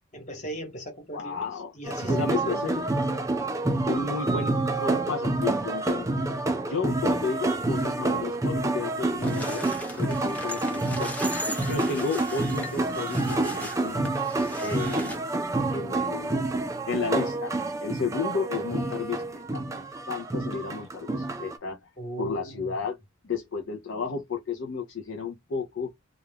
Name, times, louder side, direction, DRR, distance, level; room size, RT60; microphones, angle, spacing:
voice 1, 0.1-2.7 22.0-22.8, right 1 dB, 35° left, 1.1 m, -38 dB
voice 2, 1.1-1.7 2.1-2.8 3.9-6.3 6.7-11.1 11.7-14.1 14.6-15.2 15.7-16.4 16.9-17.5 17.8-21.8 22.2-23.0 23.2-25.9, left 5 dB, 65° left, 0.5 m, -32 dB
sound 1, 1.8-21.6, right 2 dB, 15° right, 0.4 m, -28 dB
sound 2, 9.2-15.2, left 1 dB, 10° left, 0.7 m, -38 dB
2.4 x 2.2 x 3.3 m
head